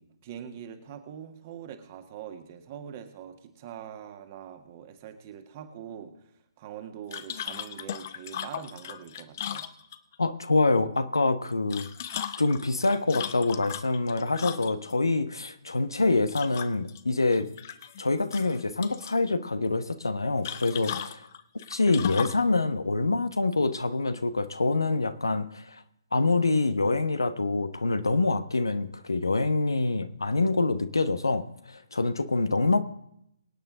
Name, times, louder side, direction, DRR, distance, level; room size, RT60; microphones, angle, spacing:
voice 1, 0.0-6.3 6.6-9.7 20.9-21.1, right 9 dB, 35° right, 6 dB, 1.6 m, -43 dB
sound 1, 7.1-10.2 11.5-15.0 16.3-17.0 17.3-18.0 18.3-19.2 20.4-22.5, left 9 dB, 40° left, 0.6 m, -36 dB
voice 2, 10.2-11.9 12.4-17.5 18.0-21.3 21.7-25.8 26.1-32.8, left 3 dB, 75° left, 11 dB, 0.9 m, -26 dB
24.0 x 8.9 x 3.8 m, 0.77 s
figure-of-eight pair, 135°, 2 cm